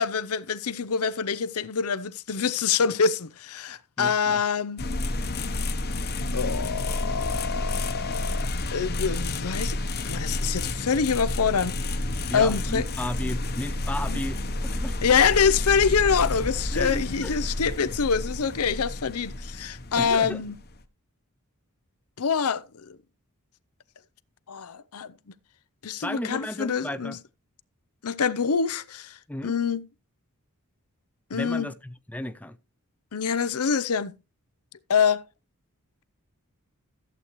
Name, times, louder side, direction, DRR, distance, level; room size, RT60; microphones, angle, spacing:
voice 1, 0.0-4.8 6.3-8.4 8.7-9.8 10.0-11.7 12.3-12.8 13.2-13.3 14.1-14.2 15.0-20.6 22.2-22.6 24.5-25.1 25.8-27.2 28.0-29.1 29.4-29.8 31.3-31.7 33.1-34.1 34.9-35.2, left 6 dB, 75° left, 0.6 m, -25 dB
voice 2, 4.0-4.4 12.3-15.0 16.7-17.4 19.9-20.5 26.0-27.2 29.3-29.6 31.3-32.6, left 1 dB, 5° left, 0.4 m, -34 dB
sound 1, 4.8-20.8, left 2 dB, 45° left, 1.0 m, -30 dB
sound 2, 12.7-18.8, equal, 10° right, 1.9 m, -48 dB
14.0 x 8.2 x 3.1 m
head